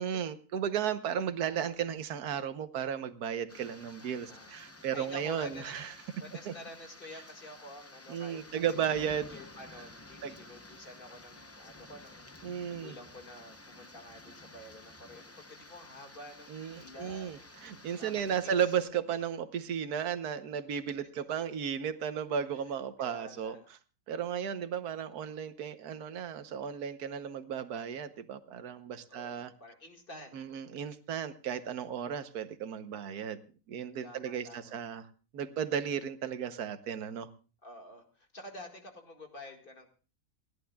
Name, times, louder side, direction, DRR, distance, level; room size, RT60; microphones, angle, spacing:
voice 1, 0.0-5.9 6.5-6.6 8.1-9.3 10.2-10.3 12.4-12.9 16.5-23.5 24.1-29.5 30.3-33.4 33.7-35.1 35.3-37.3, right 8 dB, 85° right, 11 dB, 1.4 m, -34 dB
sound 1, 3.5-18.9, left 2 dB, 15° left, 0.5 m, -52 dB
voice 2, 4.0-4.5 4.9-5.7 6.2-8.8 9.1-17.4 18.0-18.6 23.0-23.7 29.1-30.6 34.0-34.8 37.6-39.9, left 1 dB, 35° left, 4 dB, 2.1 m, -49 dB
29.0 x 11.5 x 2.3 m, 0.35 s
omnidirectional pair, 1.6 m